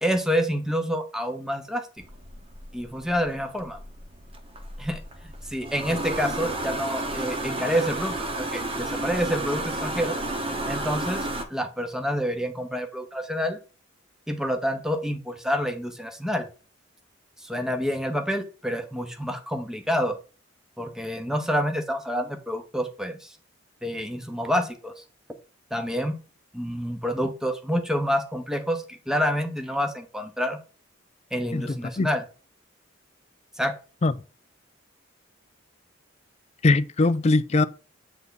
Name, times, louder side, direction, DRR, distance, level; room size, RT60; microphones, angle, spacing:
voice 1, 0.0-1.9 2.7-3.8 4.8-5.0 5.4-10.2 10.7-13.6 14.3-16.5 17.4-20.2 20.8-23.4 23.8-25.0 25.7-26.2 26.5-30.6 31.3-32.2 33.6-33.7, equal, 5° right, 0.8 m, -28 dB
sound 1, 2.0-11.4, right 1 dB, 30° right, 0.9 m, -32 dB
voice 2, 31.5-32.1 34.0-34.1 36.6-37.6, left 2 dB, 35° left, 0.4 m, -21 dB
8.0 x 3.5 x 3.9 m
head